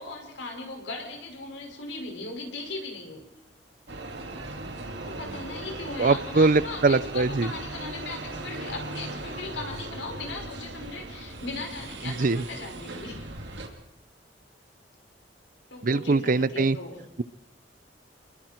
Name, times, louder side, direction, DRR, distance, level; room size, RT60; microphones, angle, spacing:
voice 1, 0.0-3.2 5.0-13.2 15.7-17.0, left 3 dB, 85° left, 1 dB, 5.8 m, -38 dB
sound 1, 3.9-13.7, right 2 dB, 70° right, 2.8 m, -38 dB
voice 2, 6.0-7.5 12.0-12.4 15.8-16.8, right 3 dB, 50° right, 17 dB, 0.6 m, -22 dB
28.5 x 21.5 x 4.5 m, 0.92 s
head